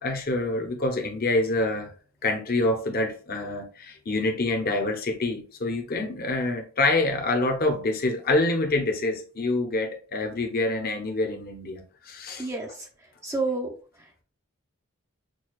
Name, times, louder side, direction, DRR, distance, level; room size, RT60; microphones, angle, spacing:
voice 1, 0.0-1.9 2.2-12.5, left 2 dB, 45° left, 0.7 m, -26 dB
voice 2, 12.4-12.9 13.2-14.2, right 3 dB, 15° right, 0.5 m, -31 dB
6.1 x 2.3 x 2.4 m
head